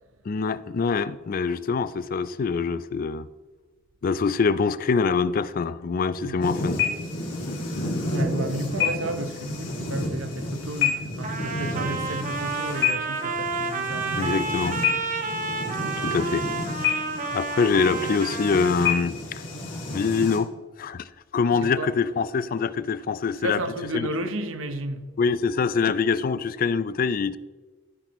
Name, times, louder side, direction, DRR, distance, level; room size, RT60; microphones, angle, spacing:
voice 1, 0.3-3.3 4.0-6.8 14.2-14.8 16.0-16.4 17.3-19.4 19.9-20.5 20.8-23.6 23.9-24.1 25.2-27.4, left 5 dB, 45° left, 0.4 m, -24 dB
sound 1, 6.4-20.4, left 4 dB, 65° left, 2.5 m, -30 dB
voice 2, 8.1-14.3 15.8-16.1 21.6-21.9 23.4-25.1, right 2 dB, 75° right, 0.8 m, -32 dB
Trumpet, 11.2-19.0, right 4 dB, 40° right, 1.0 m, -30 dB
14.5 x 6.0 x 3.0 m
head